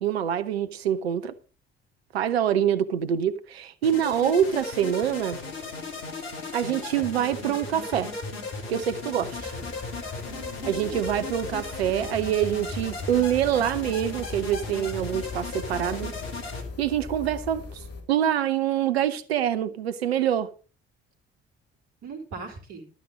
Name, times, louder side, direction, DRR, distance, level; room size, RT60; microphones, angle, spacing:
voice 1, 0.0-1.3 2.1-5.4 6.5-8.1 8.7-9.3 10.6-16.1 16.8-17.6 18.1-20.5, right 10 dB, 80° right, 0.8 m, -25 dB
sound 1, 3.8-16.6, left 3 dB, 75° left, 2.3 m, -36 dB
voice 2, 9.1-9.9 10.2-11.0 22.0-22.9, right 4 dB, 60° right, 3.6 m, -41 dB
sound 2, 9.3-18.0, left 3 dB, 50° left, 3.4 m, -40 dB
12.0 x 9.3 x 5.1 m
figure-of-eight pair, 45°, 31 cm